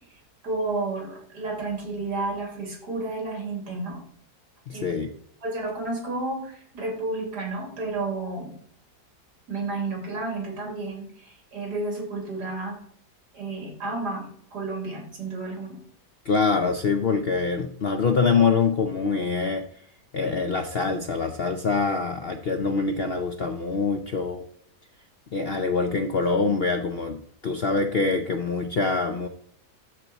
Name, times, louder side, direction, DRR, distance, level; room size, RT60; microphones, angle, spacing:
voice 1, 0.4-4.0 4.7-4.8 5.4-8.5 9.5-12.8 13.3-15.8, right 2 dB, 80° right, 1 dB, 3.2 m, -31 dB
voice 2, 4.7-5.1 16.2-19.8 20.1-24.4 25.3-29.3, left 4 dB, 60° left, 6 dB, 0.6 m, -25 dB
12.5 x 4.5 x 4.1 m, 0.63 s
omnidirectional pair, 1.8 m